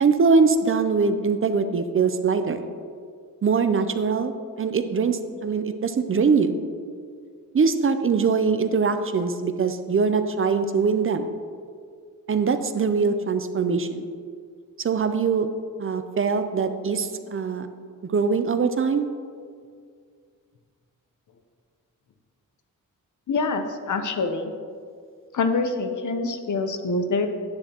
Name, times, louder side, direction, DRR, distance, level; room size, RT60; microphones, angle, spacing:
voice 1, 0.0-2.6 3.4-6.6 7.5-11.3 12.3-14.1 14.8-15.5 15.8-17.7 18.1-19.1, right 5 dB, 40° right, 9 dB, 0.5 m, -22 dB
voice 2, 23.3-24.5 25.3-27.3, left 3 dB, 60° left, 7 dB, 0.8 m, -25 dB
9.6 x 9.6 x 2.9 m, 2.1 s
wide cardioid pair, 115°, 34 cm